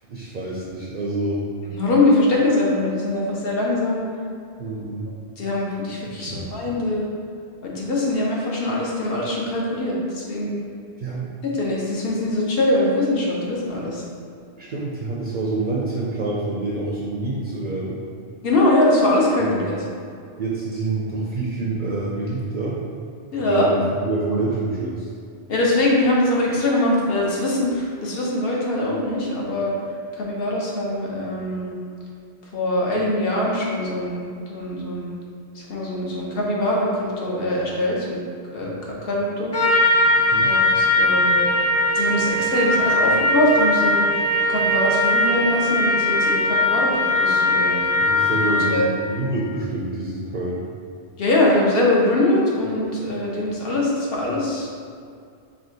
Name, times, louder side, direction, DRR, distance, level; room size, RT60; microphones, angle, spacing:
voice 1, 0.1-1.4 4.6-5.1 6.2-6.6 11.0-11.3 14.6-18.0 19.4-19.6 20.4-22.8 23.4-25.1 40.3-40.5 48.0-50.6, right 2 dB, 55° right, -5 dB, 0.6 m, -27 dB
voice 2, 1.7-4.0 5.4-7.1 7.6-10.6 11.4-14.0 18.4-19.8 23.3-23.7 25.5-29.7 30.1-31.7 32.5-35.1 35.7-38.2 38.5-39.5 40.4-41.5 41.9-44.0 44.5-47.8 48.5-48.8 51.2-54.7, left 1 dB, 60° left, -4 dB, 1.0 m, -22 dB
Trumpet, 39.5-48.9, left 1 dB, 20° left, 0.4 m, -20 dB
4.7 x 2.4 x 3.9 m, 2.3 s
omnidirectional pair, 1.2 m